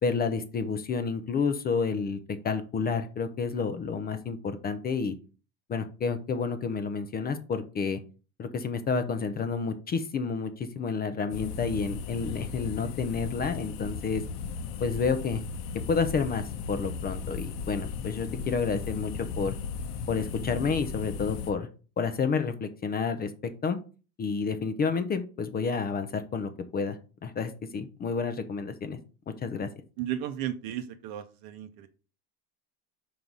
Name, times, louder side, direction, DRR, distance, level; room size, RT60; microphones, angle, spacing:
voice 1, 0.0-2.2 2.4-5.1 5.7-8.0 8.4-14.2 14.8-15.4 15.9-19.5 20.1-21.7 22.0-23.8 24.2-27.0 27.2-29.0 29.3-29.7, left 5 dB, 20° left, 10 dB, 0.4 m, -30 dB
sound 1, 11.3-21.5, left 5 dB, 65° left, 1.0 m, -36 dB
voice 2, 30.0-31.9, right 11 dB, 50° right, 9 dB, 0.7 m, -34 dB
4.7 x 3.8 x 5.4 m, 0.35 s
supercardioid pair, 130°, 45 cm